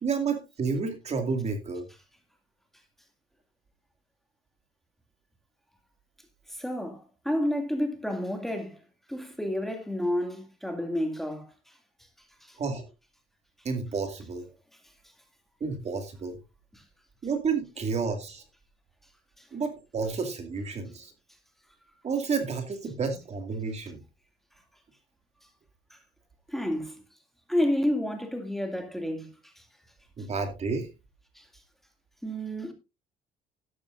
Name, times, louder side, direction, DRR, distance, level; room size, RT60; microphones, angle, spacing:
voice 1, 0.0-1.9 12.6-12.9 13.6-14.5 15.6-16.4 17.2-18.4 19.5-21.1 22.0-24.0 30.2-30.9, right 5 dB, 40° right, 2.3 m, -30 dB
voice 2, 6.5-8.8 9.1-11.5 12.4-12.6 19.4-19.5 26.5-27.0 27.5-29.6 31.4-31.5 32.2-32.7, left 1 dB, ahead, 2.4 m, -30 dB
12.5 x 11.5 x 2.6 m
cardioid pair, 110°, 17 cm